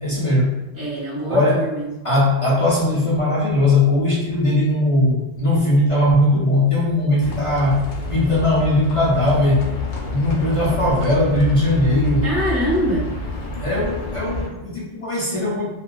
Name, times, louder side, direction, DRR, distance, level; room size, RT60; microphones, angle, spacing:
voice 1, 0.0-0.6 1.3-1.7 2.0-7.8 8.1-9.7 10.1-12.2 13.6-15.7, left 1 dB, 35° left, -7 dB, 0.6 m, -19 dB
voice 2, 0.7-1.9 12.2-13.1, equal, 15° right, -11 dB, 1.5 m, -24 dB
Livestock farm animals working animals, 7.2-14.5, left 3 dB, 75° left, 0.9 m, -29 dB
2.9 x 2.4 x 2.3 m, 1.0 s
omnidirectional pair, 1.2 m